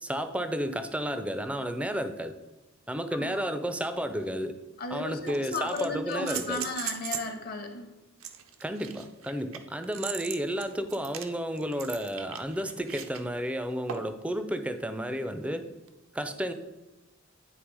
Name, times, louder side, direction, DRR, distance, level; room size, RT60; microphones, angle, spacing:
voice 1, 0.0-2.3 2.9-4.5 4.9-6.7 8.6-15.7 16.1-16.5, equal, 5° right, 9 dB, 0.4 m, -32 dB
sound 1, 4.2-4.3 5.3-7.4 8.2-13.2 13.9-14.2 15.9-16.0, right 9 dB, 75° right, 0.6 m, -39 dB
voice 2, 4.8-7.9, left 3 dB, 45° left, 6 dB, 0.8 m, -35 dB
9.6 x 3.3 x 4.7 m, 1.0 s
head